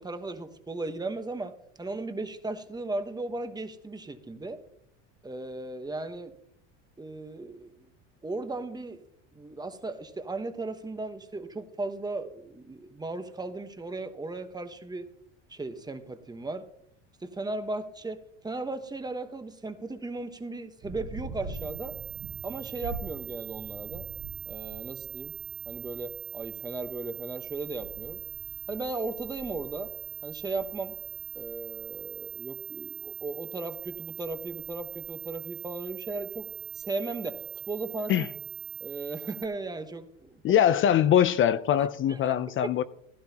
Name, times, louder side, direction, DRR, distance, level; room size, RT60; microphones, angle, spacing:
voice 1, 0.0-1.5 1.8-4.6 5.2-6.3 7.0-7.8 8.2-9.0 9.3-15.1 15.5-16.6 17.2-21.9 22.4-24.0 24.5-25.3 25.7-28.2 28.7-29.9 30.2-30.9 31.3-36.5 36.7-37.4 37.7-38.3 38.8-40.4 41.8-42.7, right 2 dB, 10° right, 1.1 m, -36 dB
sound 1, 20.8-38.8, right 3 dB, 50° right, 1.9 m, -46 dB
sound 2, 21.5-39.5, right 9 dB, 30° right, 1.1 m, -41 dB
voice 2, 40.4-42.8, left 10 dB, 35° left, 0.5 m, -22 dB
15.5 x 11.5 x 2.9 m
supercardioid pair, 105°, 36 cm